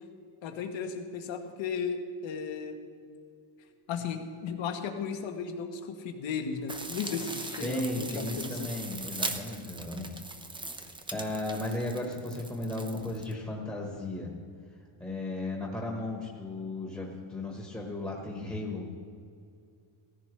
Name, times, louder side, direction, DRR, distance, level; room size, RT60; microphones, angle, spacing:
voice 1, 0.4-2.8 3.9-8.7, left 6 dB, 65° left, 5 dB, 1.4 m, -35 dB
sound 1, 6.7-13.3, right 3 dB, 10° right, 0.6 m, -40 dB
voice 2, 7.6-10.2 11.1-14.3 15.0-18.9, left 2 dB, 5° left, -1 dB, 1.3 m, -35 dB
18.0 x 15.0 x 3.3 m, 2.3 s
cardioid pair, 175°, 48 cm